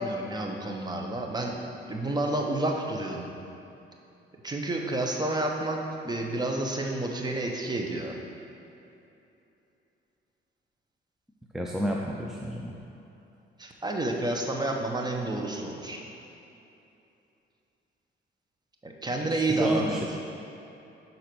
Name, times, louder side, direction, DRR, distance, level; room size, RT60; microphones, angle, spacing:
voice 1, 0.0-1.5 1.9-3.3 4.4-5.8 6.0-8.2 13.6-16.0 18.8-20.1, right 2 dB, 20° right, 1 dB, 0.9 m, -30 dB
voice 2, 11.5-12.8 19.1-20.1, equal, ahead, -2 dB, 0.5 m, -31 dB
6.5 x 4.0 x 6.0 m, 2.8 s
cardioid pair, 90°, 20 cm